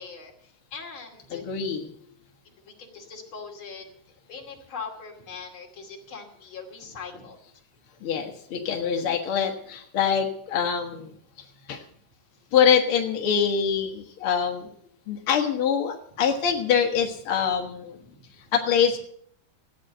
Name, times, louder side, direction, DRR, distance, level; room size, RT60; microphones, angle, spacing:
voice 1, 0.0-1.4 2.4-3.8 4.3-7.4 11.9-12.0 18.1-18.4, left 5 dB, 35° left, 1 dB, 2.8 m, -41 dB
voice 2, 1.3-1.9 8.0-11.1 11.7-11.8 12.5-14.7 15.1-18.0 18.5-19.0, left 7 dB, 70° left, 2 dB, 1.3 m, -24 dB
15.0 x 9.4 x 7.8 m, 0.64 s
omnidirectional pair, 4.6 m